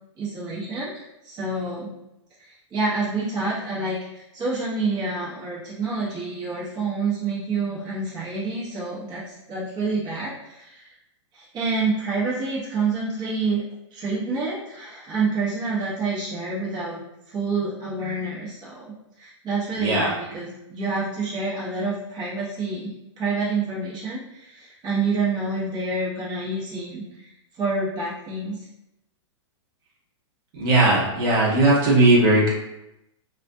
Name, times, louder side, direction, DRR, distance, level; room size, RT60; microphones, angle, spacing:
voice 1, 0.2-1.9 2.4-10.9 11.3-13.6 13.9-17.0 17.3-22.9 23.2-27.3 27.6-28.6, right 3 dB, 30° right, -8 dB, 0.9 m, -28 dB
voice 2, 19.8-20.1 30.6-32.5, right 2 dB, 55° right, -5 dB, 1.0 m, -18 dB
2.4 x 2.3 x 2.6 m, 0.87 s
hypercardioid pair, 115°, 16 cm